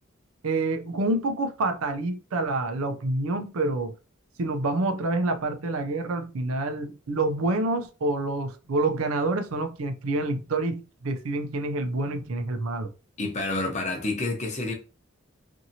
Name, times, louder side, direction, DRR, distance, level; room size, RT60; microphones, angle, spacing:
voice 1, 0.4-3.9 4.4-12.9, right 2 dB, 85° right, 0.5 m, -27 dB
voice 2, 13.2-14.7, left 2 dB, 35° left, 0.8 m, -28 dB
2.8 x 2.6 x 2.7 m
head